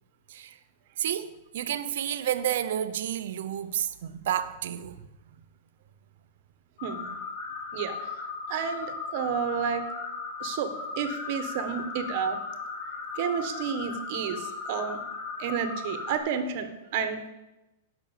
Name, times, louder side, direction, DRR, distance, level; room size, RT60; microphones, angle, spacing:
voice 1, 0.3-0.6 1.0-5.1, right 10 dB, 65° right, 0.7 m, -30 dB
sound 1, 6.8-16.2, left 4 dB, 75° left, 3.5 m, -37 dB
voice 2, 6.8-7.2 7.7-8.1 8.5-9.8 10.4-12.4 13.2-15.0 15.4-17.3, right 7 dB, 45° right, 1.3 m, -31 dB
10.5 x 6.1 x 7.3 m
supercardioid pair, 165°, 0 cm